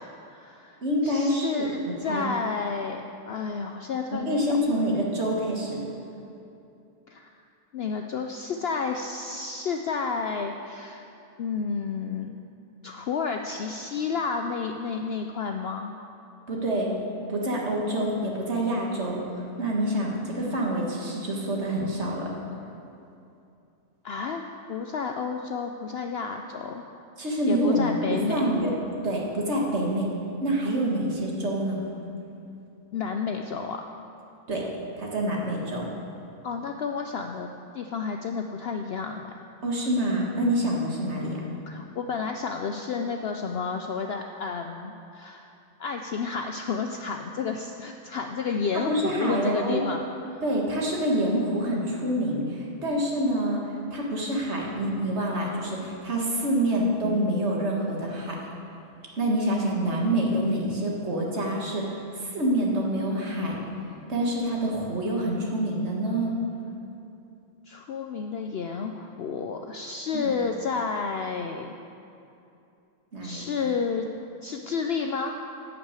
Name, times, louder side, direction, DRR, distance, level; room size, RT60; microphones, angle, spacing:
voice 1, 0.0-4.5 7.1-7.3 7.7-11.1 11.4-12.3 12.8-15.9 24.0-26.8 27.5-28.4 32.9-33.8 36.4-39.3 41.0-41.1 41.7-45.5 45.8-50.0 50.3-50.4 67.7-71.7 73.2-74.1 74.4-75.4, left 5 dB, 90° left, 4 dB, 0.5 m, -31 dB
voice 2, 0.8-2.3 4.1-5.8 16.5-17.0 17.3-22.3 27.2-28.7 29.0-30.1 30.4-31.8 34.5-34.7 35.0-35.9 39.6-41.3 48.9-49.8 50.4-58.4 59.2-63.6 64.1-66.4 70.2-70.3 73.1-73.4, right 1 dB, 45° right, -2 dB, 1.9 m, -27 dB
10.5 x 6.1 x 8.2 m, 2.7 s
omnidirectional pair, 1.6 m